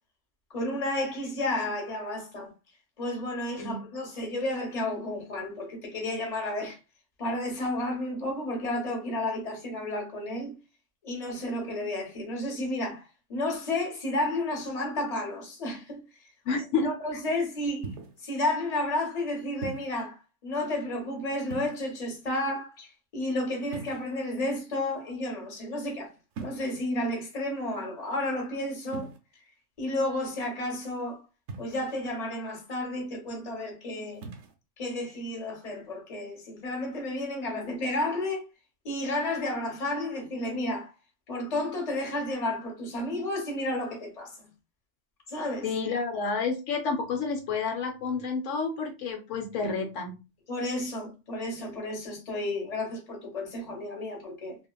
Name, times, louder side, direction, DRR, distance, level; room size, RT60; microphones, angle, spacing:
voice 1, 0.5-2.5 3.0-6.8 7.2-10.5 11.0-16.0 16.8-17.9 18.2-26.1 26.4-29.1 29.8-31.2 31.6-34.2 34.8-38.5 38.8-40.9 41.3-44.4 45.3-45.7 50.5-54.6, left 1 dB, 35° left, 1.0 m, -32 dB
voice 2, 16.5-16.9 45.6-50.1, left 4 dB, 80° left, 0.9 m, -30 dB
sound 1, 17.8-18.3 19.6-20.0 21.4-22.1 23.7-24.4 26.3-26.9 28.9-29.2 31.5-32.0 34.1-34.5, right 4 dB, 75° right, 1.0 m, -40 dB
2.9 x 2.5 x 2.3 m
omnidirectional pair, 1.3 m